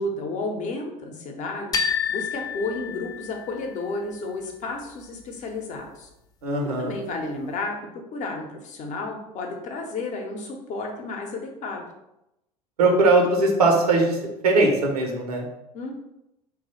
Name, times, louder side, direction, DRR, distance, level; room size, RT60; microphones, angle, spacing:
voice 1, 0.0-1.8 2.1-6.1 6.8-11.8 15.7-16.0, left 2 dB, 40° left, 2 dB, 0.8 m, -32 dB
sound 1, 1.7-3.7, left 7 dB, 20° left, 0.4 m, -28 dB
voice 2, 6.4-6.9 12.8-14.2 14.4-15.4, right 2 dB, 75° right, 1 dB, 0.8 m, -20 dB
3.0 x 2.4 x 4.1 m, 0.88 s
figure-of-eight pair, 75°, 20 cm